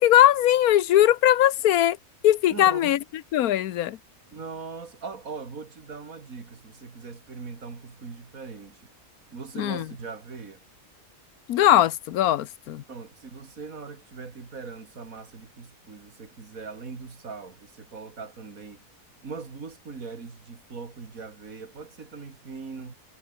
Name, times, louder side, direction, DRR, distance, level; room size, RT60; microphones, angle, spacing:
voice 1, 0.0-2.0 2.2-3.0 3.3-4.0 9.6-9.9 11.5-12.8, left 12 dB, 85° left, 1.2 m, -20 dB
voice 2, 2.5-3.0 4.3-8.9 9.3-10.6 12.9-18.8 19.2-22.9, right 4 dB, 70° right, 3.0 m, -40 dB
omnidirectional pair, 1.5 m